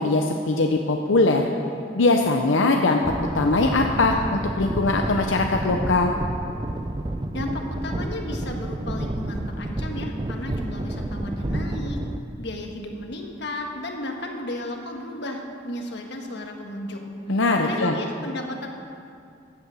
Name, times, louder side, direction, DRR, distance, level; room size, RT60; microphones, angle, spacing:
voice 1, 0.0-1.5 2.0-3.0 3.3-6.1 17.3-17.9, left 3 dB, 90° left, 3 dB, 0.8 m, -21 dB
sound 1, 3.0-12.2, right 1 dB, 25° right, 0.5 m, -30 dB
voice 2, 7.3-12.0 12.4-17.4 17.7-18.7, left 1 dB, 65° left, 2 dB, 1.5 m, -34 dB
15.0 x 8.5 x 6.3 m, 2.4 s
head